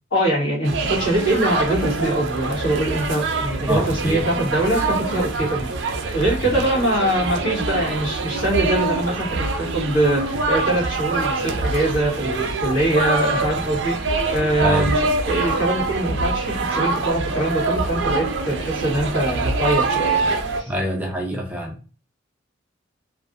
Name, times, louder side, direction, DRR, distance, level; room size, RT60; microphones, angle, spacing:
voice 1, 0.1-20.3 20.6-20.7, right 1 dB, 80° left, -4 dB, 1.3 m, -23 dB
sound 1, 0.6-20.6, right 3 dB, 70° right, 0.4 m, -24 dB
voice 2, 3.7-4.2 6.4-6.6 14.6-14.9 20.7-21.9, equal, 10° right, 0 dB, 0.4 m, -25 dB
2.5 x 2.3 x 2.5 m, 0.37 s
head